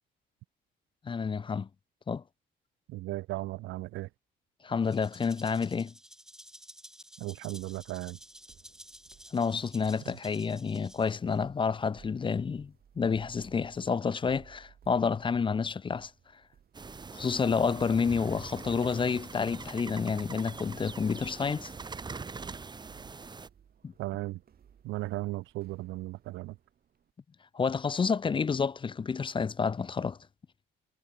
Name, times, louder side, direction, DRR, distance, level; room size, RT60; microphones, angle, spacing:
voice 1, 1.0-1.7 2.1-2.2 4.6-5.9 9.3-16.1 17.1-21.7 23.8-23.9 27.5-30.2, left 5 dB, 25° left, 0.4 m, -29 dB
voice 2, 2.9-4.1 7.2-8.2 10.1-10.2 24.0-24.4 24.8-26.6, right 18 dB, 85° right, 0.4 m, -36 dB
Rattle (instrument), 4.8-11.4, equal, 5° right, 1.5 m, -52 dB
sound 1, 7.6-27.1, right 8 dB, 50° right, 1.5 m, -60 dB
sound 2, 16.7-23.5, right 4 dB, 20° right, 0.7 m, -43 dB
cardioid pair, 90°, 20 cm